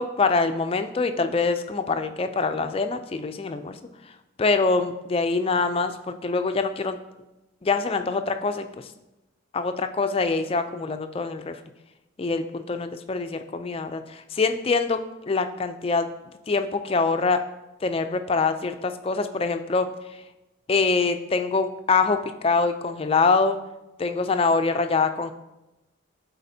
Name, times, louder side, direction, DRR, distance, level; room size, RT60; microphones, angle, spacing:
voice 1, 0.0-3.8 4.4-7.0 7.6-8.7 9.5-11.6 12.2-16.1 16.5-17.4 17.8-19.9 20.7-23.6 24.0-25.3, left 4 dB, 25° left, 8 dB, 0.3 m, -24 dB
12.5 x 4.2 x 2.7 m, 0.99 s
head